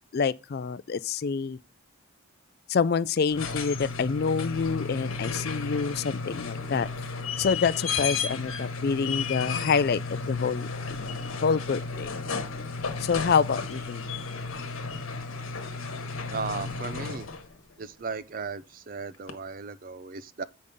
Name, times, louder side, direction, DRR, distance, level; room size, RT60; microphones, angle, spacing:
voice 1, 0.1-1.6 2.7-6.9 7.4-10.7 11.0-11.1 11.4-12.2 13.0-14.1, left 5 dB, 45° left, 0.3 m, -27 dB
sound 1, 3.2-17.5 19.3-19.4, left 4 dB, 75° left, 1.3 m, -33 dB
voice 2, 16.3-17.3 17.8-20.4, right 4 dB, 40° right, 0.5 m, -36 dB
8.4 x 5.3 x 3.6 m
head